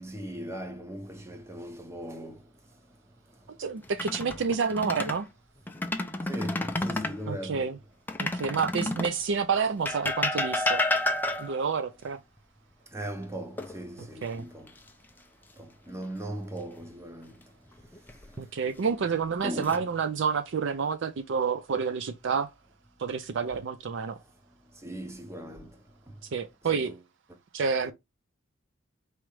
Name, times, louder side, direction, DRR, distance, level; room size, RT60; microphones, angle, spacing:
voice 1, 0.0-2.4 6.3-7.7 12.9-14.7 15.6-17.3 19.4-19.8 24.1-24.2 24.8-25.7 26.7-27.0 27.8-27.9, right 1 dB, 15° right, 0.8 m, -39 dB
voice 2, 3.6-5.3 7.3-7.8 8.2-10.8 11.4-12.2 14.2-14.5 18.4-22.5 23.0-24.2 26.3-27.0 27.5-27.9, right 5 dB, 60° right, 0.4 m, -29 dB
sound 1, 3.8-5.2 5.7-7.2 8.1-9.2 9.9-11.7 13.6-14.3 14.7-14.9 17.8-18.4 19.1-19.8, left 2 dB, 10° left, 0.4 m, -30 dB
4.7 x 3.1 x 3.1 m
head